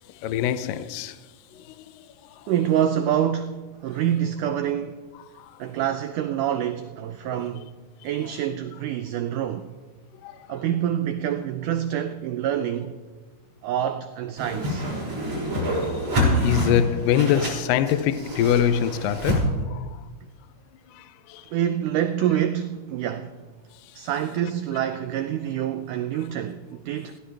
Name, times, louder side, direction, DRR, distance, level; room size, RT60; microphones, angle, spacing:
voice 1, 0.1-1.2 1.5-2.1 2.4-2.5 5.3-5.6 10.2-10.5 15.9-16.0 16.3-20.0 20.9-21.5 23.9-24.0, left 9 dB, 80° left, 2.0 m, -25 dB
voice 2, 2.5-5.1 5.6-7.7 8.0-9.7 10.5-13.0 13.6-14.9 21.5-23.4 23.9-27.2, right 10 dB, 90° right, 1.8 m, -26 dB
Whoosh swoosh swish, 14.4-19.4, equal, 40° right, 6.5 m, -26 dB
21.0 x 16.5 x 3.4 m
omnidirectional pair, 4.5 m